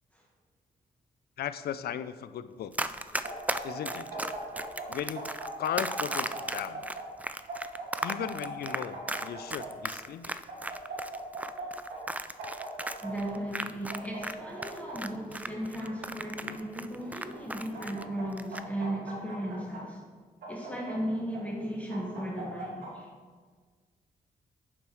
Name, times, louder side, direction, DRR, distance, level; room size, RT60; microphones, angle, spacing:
voice 1, 1.4-2.7 3.6-4.1 4.9-6.9 8.0-10.4, left 9 dB, 70° left, 13 dB, 0.4 m, -36 dB
Run, 2.7-14.3 14.6-18.0 18.3-18.6, right 2 dB, 10° right, 0.3 m, -35 dB
sound 1, 3.2-4.9 5.2-7.0 7.5-9.7 10.5-11.6 11.9-12.0 12.4-13.3 13.9-15.0 15.5-16.5 17.3-18.2 18.5-19.8 20.4-21.4 21.9-22.9, right 3 dB, 90° right, 1.9 m, -40 dB
voice 2, 13.0-20.0 20.5-23.1, right 1 dB, 10° left, -3 dB, 1.4 m, -36 dB
8.7 x 6.2 x 3.1 m, 1.5 s
cardioid pair, 65°, 17 cm